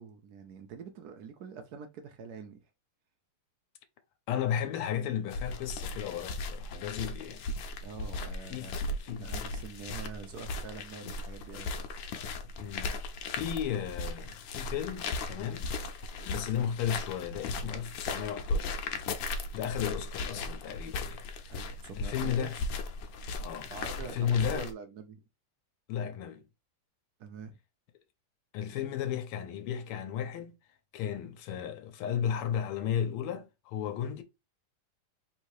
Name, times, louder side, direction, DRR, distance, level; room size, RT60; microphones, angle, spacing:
voice 1, 0.0-2.6 7.8-11.7 21.5-22.6 23.7-25.2 27.2-27.6, right 5 dB, 80° right, 0.8 m, -45 dB
voice 2, 4.3-7.4 8.5-9.2 12.2-15.7 16.2-18.7 19.5-21.2 21.5-21.7 22.0-22.6 23.4-23.7 24.1-24.7 25.9-26.4 28.5-30.6 30.9-34.2, left 9 dB, 85° left, 1.6 m, -34 dB
sound 1, 5.3-24.7, left 3 dB, 70° left, 1.3 m, -37 dB
3.7 x 2.7 x 4.6 m
omnidirectional pair, 2.4 m